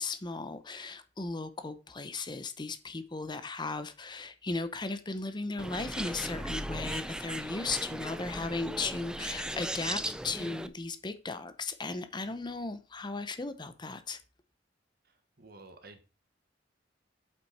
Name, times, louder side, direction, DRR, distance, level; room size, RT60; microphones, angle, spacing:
voice 1, 0.0-14.2, left 3 dB, 25° left, 0.7 m, -36 dB
Bird, 5.6-10.7, right 1 dB, 5° right, 0.4 m, -37 dB
voice 2, 15.0-16.0, right 2 dB, 60° right, 1.4 m, -52 dB
8.1 x 5.7 x 4.2 m
head